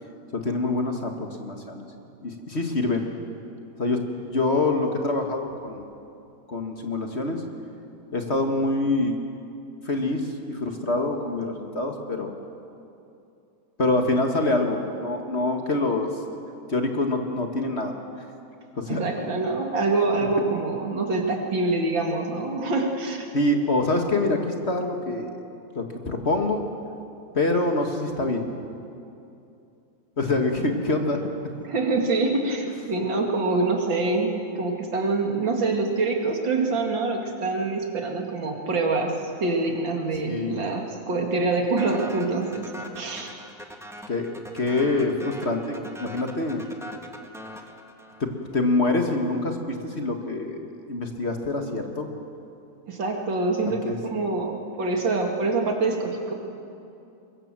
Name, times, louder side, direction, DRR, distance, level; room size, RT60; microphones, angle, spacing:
voice 1, 0.3-1.9 2.2-3.1 3.8-5.9 6.5-7.4 8.1-9.2 9.9-12.3 13.8-16.1 16.7-17.9 18.8-19.0 23.3-25.3 25.8-26.6 27.3-28.5 30.2-31.2 40.2-40.6 44.1-44.3 44.5-46.6 48.2-52.1 53.8-54.0, left 2 dB, 35° left, 4 dB, 1.8 m, -25 dB
voice 2, 18.9-23.2 31.6-39.1 39.4-43.3 52.9-56.3, right 3 dB, 80° right, 2 dB, 3.0 m, -25 dB
sound 1, 41.8-48.4, equal, ahead, 1.3 m, -42 dB
23.0 x 22.0 x 7.4 m, 2.7 s
omnidirectional pair, 2.0 m